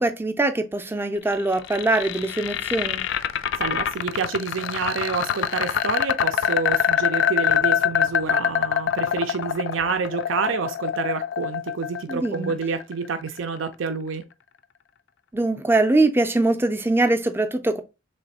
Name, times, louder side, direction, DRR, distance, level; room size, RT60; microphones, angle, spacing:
voice 1, 0.0-3.0 12.1-12.5 15.3-17.8, right 2 dB, 10° right, 0.4 m, -22 dB
sound 1, 1.3-13.4, left 8 dB, 65° left, 0.3 m, -24 dB
voice 2, 3.6-14.2, right 5 dB, 75° right, 0.5 m, -28 dB
3.3 x 3.1 x 4.0 m
head